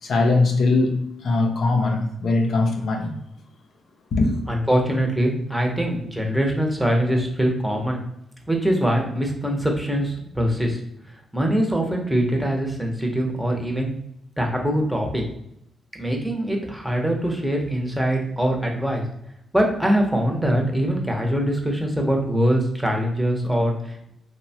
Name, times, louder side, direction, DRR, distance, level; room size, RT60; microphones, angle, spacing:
voice 1, 0.0-3.1 4.1-4.4, left 3 dB, 65° left, 0.5 m, -21 dB
voice 2, 4.5-8.0 8.5-10.8 11.1-13.9 14.4-15.2 16.0-19.0 19.5-24.1, equal, ahead, 0.7 m, -23 dB
2.9 x 2.1 x 2.7 m
cardioid pair, 85°, 0 cm